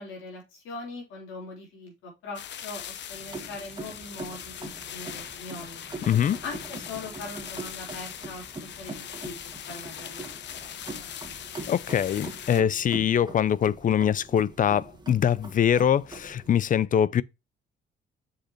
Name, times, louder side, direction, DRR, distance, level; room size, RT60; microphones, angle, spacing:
voice 1, 0.0-5.8 6.4-9.4 9.7-11.1, left 3 dB, 90° left, 3.6 m, -41 dB
sound 1, 2.4-12.6, left 10 dB, 65° left, 0.8 m, -41 dB
sound 2, 3.1-16.5, right 3 dB, 20° right, 1.9 m, -43 dB
voice 2, 6.1-6.4 11.7-17.2, left 9 dB, 45° left, 0.4 m, -23 dB
6.5 x 5.2 x 2.9 m
cardioid pair, 90°, 20 cm